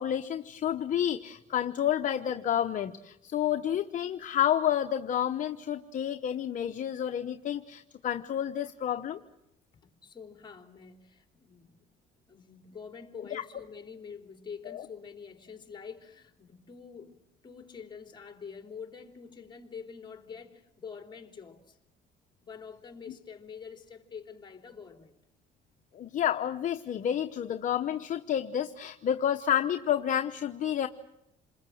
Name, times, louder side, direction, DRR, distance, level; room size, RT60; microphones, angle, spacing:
voice 1, 0.0-9.2 13.3-13.4 14.7-14.8 25.9-30.9, left 10 dB, 50° left, 1.0 m, -30 dB
voice 2, 9.8-11.8 12.3-21.8 22.4-25.2, left 6 dB, 25° left, 3.3 m, -46 dB
28.0 x 21.0 x 7.8 m
cardioid pair, 110°, 17 cm